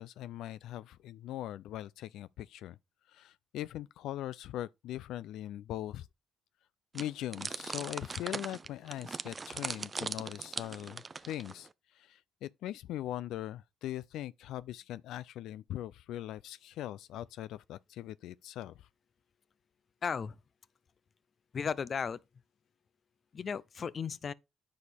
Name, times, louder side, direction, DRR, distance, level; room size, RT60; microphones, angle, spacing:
voice 1, 0.0-2.8 3.1-6.1 6.9-18.9, left 13 dB, 85° left, 0.3 m, -41 dB
sound 1, 6.9-11.7, right 4 dB, 30° right, 0.5 m, -40 dB
voice 2, 20.0-20.3 21.5-22.2 23.3-24.3, left 6 dB, 45° left, 0.6 m, -35 dB
9.6 x 6.3 x 3.4 m
cardioid pair, 90°, 0 cm